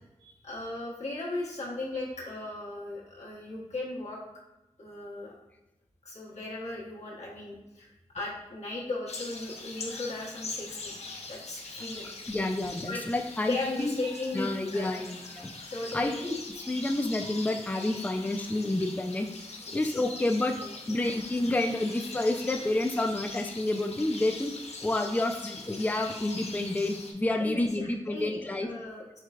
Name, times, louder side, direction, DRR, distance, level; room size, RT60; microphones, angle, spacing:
voice 1, 0.2-4.2 4.8-5.4 6.0-10.9 11.3-12.1 12.9-13.0 13.4-15.1 15.7-16.2 19.7-20.0 20.6-20.7 27.4-29.2, left 2 dB, 85° left, -5 dB, 1.0 m, -37 dB
sound 1, 9.1-27.1, left 3 dB, 70° left, 0.6 m, -42 dB
voice 2, 12.3-14.0 14.3-15.5 15.9-16.4 16.7-19.3 19.7-20.6 20.9-24.5 24.8-28.7, left 2 dB, 15° left, 4 dB, 0.4 m, -29 dB
4.7 x 3.2 x 2.3 m, 0.98 s
cardioid pair, 45°, 11 cm